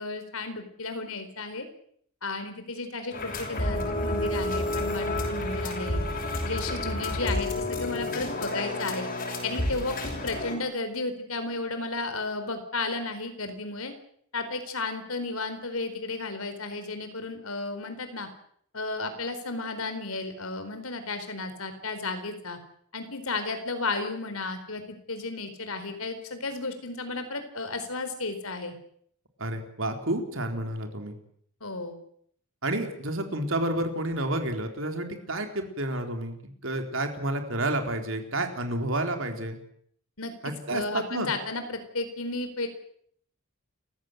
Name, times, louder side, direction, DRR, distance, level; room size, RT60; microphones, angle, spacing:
voice 1, 0.0-1.7 2.2-6.0 6.4-9.1 9.4-9.9 10.2-13.9 14.3-18.3 18.7-22.6 22.9-28.7 31.6-32.0 40.2-42.7, left 3 dB, 90° left, 8 dB, 4.4 m, -33 dB
sound 1, 3.1-10.6, left 1 dB, 45° left, 6.2 m, -30 dB
voice 2, 29.4-31.2 32.6-39.6 40.4-41.3, right 1 dB, 65° right, 5 dB, 4.1 m, -30 dB
29.5 x 15.5 x 8.0 m, 0.65 s
head